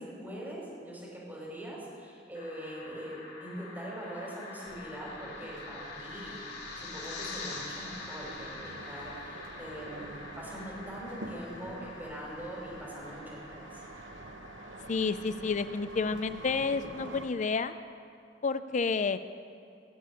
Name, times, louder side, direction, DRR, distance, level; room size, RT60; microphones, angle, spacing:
voice 1, 0.0-6.4 6.8-13.8, right 1 dB, 10° right, -5 dB, 5.0 m, -42 dB
sound 1, 2.3-17.7, left 3 dB, 65° left, 3.3 m, -46 dB
sound 2, 4.7-17.3, right 2 dB, 85° right, 1.0 m, -47 dB
voice 2, 14.9-17.7 18.4-19.2, left 4 dB, 40° left, 12 dB, 0.5 m, -30 dB
19.0 x 6.8 x 9.7 m, 2.5 s
head